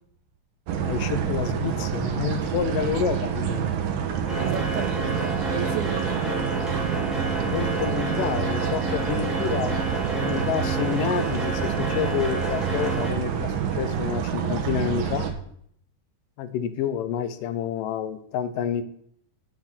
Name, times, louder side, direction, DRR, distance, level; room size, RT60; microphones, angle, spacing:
voice 1, 0.7-3.7 7.4-9.8 10.1-15.3 16.4-18.8, left 9 dB, 85° left, 2.3 m, -29 dB
sound 1, 0.7-15.3, right 8 dB, 90° right, 2.8 m, -27 dB
sound 2, 4.3-13.1, equal, ahead, 2.2 m, -31 dB
voice 2, 4.4-6.5, right 7 dB, 70° right, 2.3 m, -33 dB
8.7 x 8.1 x 6.1 m
omnidirectional pair, 3.8 m